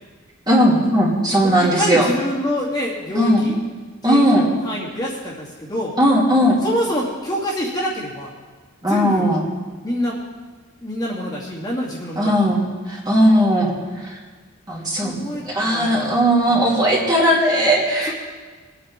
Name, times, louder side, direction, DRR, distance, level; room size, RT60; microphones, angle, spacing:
voice 1, 0.5-2.1 3.1-3.4 4.0-4.4 6.0-6.6 8.8-9.5 12.2-12.6 12.9-14.2 14.7-15.1 15.4-18.1, equal, 20° right, -5 dB, 3.1 m, -17 dB
voice 2, 1.4-3.6 4.0-5.9 6.6-8.3 8.8-9.3 9.8-10.2 10.8-12.3 15.0-16.2 16.5-16.7, equal, 20° left, -6 dB, 2.4 m, -26 dB
22.5 x 9.3 x 3.7 m, 1.4 s
head